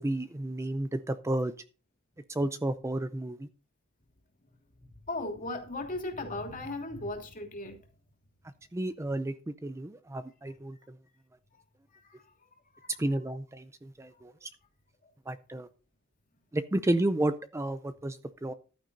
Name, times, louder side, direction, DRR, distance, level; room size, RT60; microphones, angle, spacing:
voice 1, 0.0-1.5 2.3-3.5 8.7-9.3 9.6-10.8 13.0-14.5 15.3-15.7 16.5-18.5, right 1 dB, 15° right, 0.4 m, -31 dB
voice 2, 5.1-7.7 12.7-12.9, left 2 dB, 40° left, 2.8 m, -36 dB
14.0 x 11.5 x 2.7 m
head